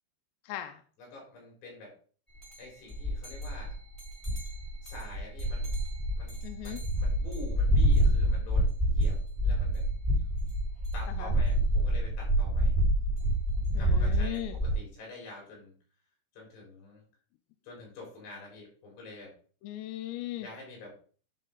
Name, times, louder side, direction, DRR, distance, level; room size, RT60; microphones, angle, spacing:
voice 1, 0.4-0.8 6.4-6.8 11.1-11.3 13.7-14.6 19.6-20.5, left 13 dB, 80° left, 7 dB, 2.7 m, -38 dB
voice 2, 1.0-1.9 2.6-3.8 4.8-5.7 6.2-9.2 9.4-9.9 10.9-12.8 13.7-15.7 16.3-17.0 17.6-19.3 20.4-20.9, left 2 dB, 65° left, -2 dB, 6.1 m, -47 dB
sound 1, 2.4-2.5 2.9-14.7, right 1 dB, 5° left, 3.3 m, -27 dB
11.0 x 5.1 x 3.8 m, 0.42 s
omnidirectional pair, 5.2 m